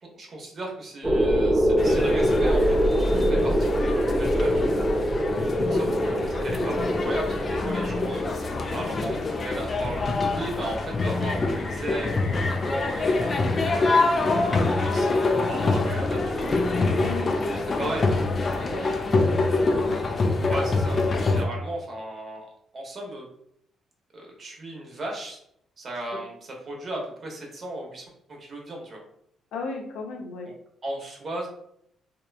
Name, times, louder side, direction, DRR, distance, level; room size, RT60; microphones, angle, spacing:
voice 1, 0.0-4.7 5.7-8.2 8.7-13.4 14.2-15.1 15.5-17.2 17.5-18.1 18.7-18.9 20.5-22.5 22.7-23.3 24.1-25.4 25.8-28.0 28.3-29.0 30.4-30.5 30.8-31.5, right 1 dB, 45° right, 0 dB, 0.8 m, -36 dB
sound 1, 1.0-8.9, equal, 10° right, 0.5 m, -24 dB
sound 2, 1.8-21.5, left 3 dB, 40° left, 0.4 m, -25 dB
voice 2, 5.3-6.0 14.9-15.1 16.9-19.9 29.5-30.5, left 3 dB, 85° left, 1 dB, 0.6 m, -36 dB
2.9 x 2.2 x 2.3 m, 0.72 s
cardioid pair, 90°, 0 cm